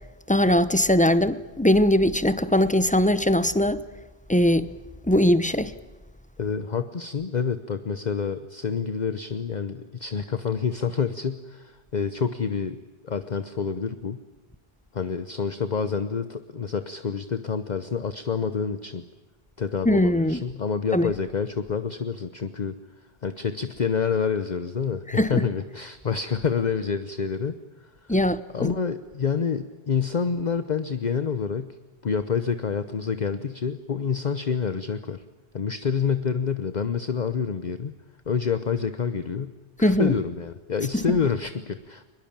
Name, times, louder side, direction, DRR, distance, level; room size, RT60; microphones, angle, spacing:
voice 1, 0.3-3.8 4.3-4.7 5.1-5.7 19.8-20.4 20.9-21.1 25.1-25.3 28.1-28.7 39.8-40.1 40.9-41.0, left 1 dB, 10° left, 0.7 m, -20 dB
voice 2, 6.4-12.8 13.0-14.2 14.9-19.0 19.6-22.7 23.2-27.6 28.0-28.1 28.5-31.8 32.0-35.2 35.5-37.9 38.3-39.5 39.8-42.1, left 6 dB, 45° left, 1.0 m, -27 dB
22.5 x 21.5 x 8.8 m
omnidirectional pair, 1.1 m